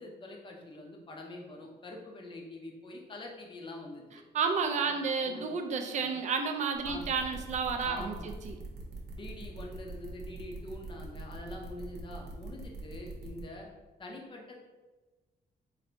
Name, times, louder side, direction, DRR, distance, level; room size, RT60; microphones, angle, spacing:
voice 1, 0.0-4.0 4.9-5.0 5.2-5.5 6.0-6.1 6.8-7.1 7.8-8.3 9.1-13.7 14.0-14.5, left 2 dB, 25° left, 1 dB, 0.6 m, -45 dB
voice 2, 4.3-8.6, right 5 dB, 40° right, 5 dB, 0.4 m, -31 dB
sound 1, 6.7-13.4, right 3 dB, 65° right, 0.8 m, -43 dB
3.9 x 2.6 x 3.2 m, 1.2 s
cardioid pair, 155°, 18 cm